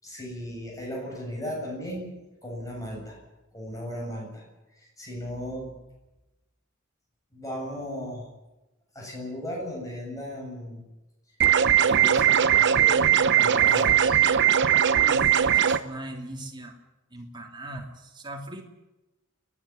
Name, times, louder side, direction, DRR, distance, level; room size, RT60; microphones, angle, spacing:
voice 1, 0.0-2.2 2.4-3.2 3.5-4.4 4.7-5.7 7.3-8.3 8.9-10.8 11.8-14.2, equal, 15° left, -2 dB, 7.9 m, -36 dB
sound 1, 11.4-15.8, right 9 dB, 55° right, 0.9 m, -20 dB
voice 2, 15.0-16.8 17.1-18.6, right 1 dB, 20° right, 1 dB, 3.0 m, -39 dB
29.5 x 11.0 x 10.0 m, 1.0 s
head